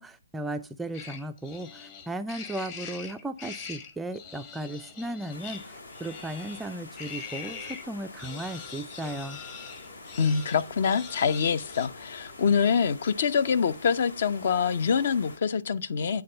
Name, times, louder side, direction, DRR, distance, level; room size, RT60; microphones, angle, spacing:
voice 1, 0.0-9.4, right 1 dB, 5° right, 0.3 m, -36 dB
sound 1, 0.9-7.8 8.2-11.9, left 6 dB, 30° left, 1.1 m, -43 dB
sound 2, 5.3-15.4, left 2 dB, 75° left, 1.8 m, -46 dB
voice 2, 10.2-16.2, left 6 dB, 50° left, 0.6 m, -25 dB
8.7 x 3.5 x 5.0 m
figure-of-eight pair, 140°, 0 cm